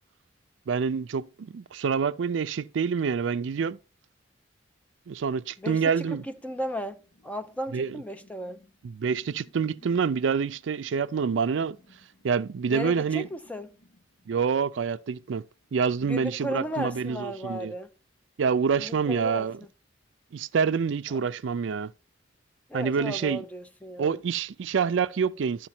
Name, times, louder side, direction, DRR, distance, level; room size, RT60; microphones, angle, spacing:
voice 1, 0.7-3.8 5.1-6.2 7.7-8.0 8.8-11.8 12.2-13.3 14.3-15.4 15.7-17.7 18.4-19.6 20.3-21.9 22.7-23.4 24.0-25.7, right 6 dB, 75° right, 0.4 m, -27 dB
sound 1, 6.0-17.5, equal, 70° left, 2.0 m, -59 dB
voice 2, 6.4-7.0 7.2-8.6 12.7-13.7 16.0-17.9 18.8-19.5 21.1-21.3 22.7-24.2, equal, 10° left, 0.7 m, -35 dB
12.0 x 5.0 x 4.3 m
head